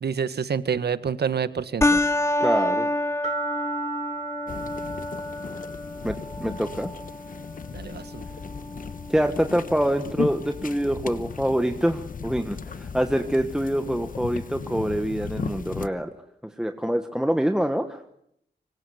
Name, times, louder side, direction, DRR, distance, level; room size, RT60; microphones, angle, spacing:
voice 1, 0.0-2.0 7.7-8.2, right 6 dB, 65° right, 13 dB, 1.6 m, -27 dB
sound 1, 1.8-10.8, left 1 dB, 15° left, 1.1 m, -29 dB
voice 2, 2.4-2.9 6.0-6.9 9.1-16.1 16.6-18.0, equal, 5° right, 7 dB, 1.3 m, -25 dB
sound 2, 3.2-5.9, right 5 dB, 40° right, 1.4 m, -36 dB
sound 3, 4.5-15.9, left 5 dB, 50° left, 1.2 m, -36 dB
25.5 x 25.0 x 7.9 m, 0.73 s
wide cardioid pair, 150°, 18 cm